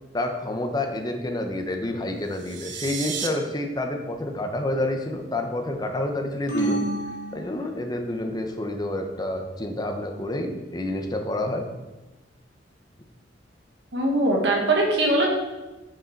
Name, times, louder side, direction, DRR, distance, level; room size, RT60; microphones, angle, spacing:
voice 1, 0.1-6.9 7.3-11.7, left 1 dB, 20° left, 4 dB, 0.8 m, -28 dB
sound 1, 2.2-3.3, right 7 dB, 85° right, 0.8 m, -33 dB
sound 2, 6.5-8.2, right 2 dB, 85° left, 2.3 m, -29 dB
voice 2, 13.9-15.3, right 1 dB, 70° right, -1 dB, 1.6 m, -21 dB
6.7 x 6.5 x 4.6 m, 1.1 s
head